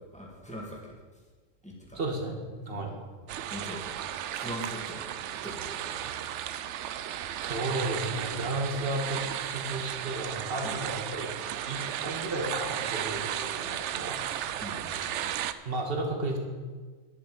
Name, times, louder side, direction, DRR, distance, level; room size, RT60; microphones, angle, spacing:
voice 1, 0.1-1.2 1.6-2.0 2.6-3.0 3.5-4.0 4.3-5.1 5.4-6.1 10.6-10.8 14.6-15.3, equal, 5° left, -3 dB, 2.5 m, -42 dB
voice 2, 2.0-2.9 7.4-11.3 11.6-14.5 15.7-16.4, right 2 dB, 50° right, 1 dB, 1.9 m, -33 dB
sound 1, 3.3-15.5, right 11 dB, 70° right, 0.8 m, -34 dB
11.0 x 10.5 x 5.2 m, 1.4 s
omnidirectional pair, 1.3 m